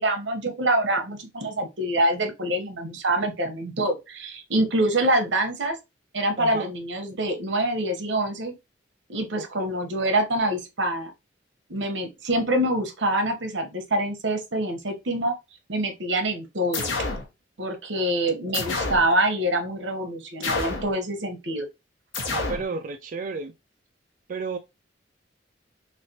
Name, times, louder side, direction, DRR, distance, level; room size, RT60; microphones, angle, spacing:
voice 1, 0.0-5.8 6.1-8.5 9.1-11.1 11.7-15.3 15.7-16.9 17.6-21.7, right 1 dB, 75° right, 1.0 m, -25 dB
voice 2, 6.4-6.7 9.3-9.4 22.3-23.5 24.3-24.6, right 4 dB, 45° right, 0.3 m, -32 dB
sound 1, 16.7-17.3 18.5-19.1 20.4-20.9 22.1-22.7, left 3 dB, 90° left, 1.0 m, -28 dB
3.4 x 3.2 x 2.8 m
head